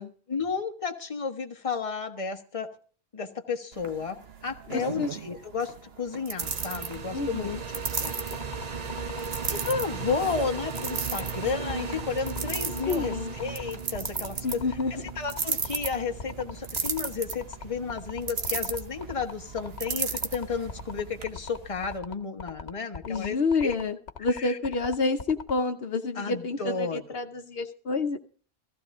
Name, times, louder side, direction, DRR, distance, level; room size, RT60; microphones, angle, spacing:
voice 1, 0.3-2.7 3.1-4.2 4.4-7.5 8.0-8.1 9.5-14.6 15.2-23.8 24.4-24.6 26.2-27.0, left 5 dB, 30° left, 5 dB, 1.2 m, -32 dB
sound 1, 3.7-21.2, right 5 dB, 70° right, 1.4 m, -36 dB
voice 2, 4.7-5.1 7.1-7.6 12.9-13.3 14.4-14.9 23.1-28.2, left 3 dB, 70° left, 7 dB, 1.1 m, -29 dB
sound 2, 6.4-22.0, right 5 dB, 40° right, 0.9 m, -38 dB
sound 3, 7.8-25.5, left 5 dB, 85° left, 1.3 m, -40 dB
15.0 x 15.0 x 3.7 m, 0.43 s
omnidirectional pair, 1.1 m